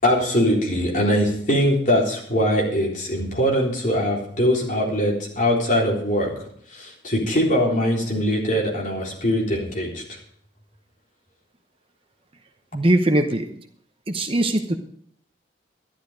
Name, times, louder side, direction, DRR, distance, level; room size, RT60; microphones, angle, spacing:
voice 1, 0.0-6.3 6.7-10.0, equal, 40° left, -3 dB, 3.9 m, -22 dB
voice 2, 12.7-13.5 14.1-14.8, right 1 dB, 30° right, 6 dB, 0.8 m, -20 dB
12.5 x 11.5 x 5.1 m, 0.65 s
head